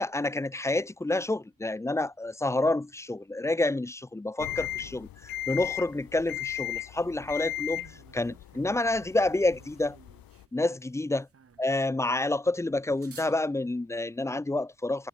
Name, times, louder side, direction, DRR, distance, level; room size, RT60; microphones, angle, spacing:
voice 1, 0.0-10.0 10.5-11.3 11.6-15.1, left 2 dB, 10° left, 0.4 m, -29 dB
sound 1, 4.4-10.5, left 14 dB, 80° left, 0.7 m, -37 dB
sound 2, 7.7-14.1, right 6 dB, 40° right, 1.7 m, -56 dB
cardioid pair, 85°, 34 cm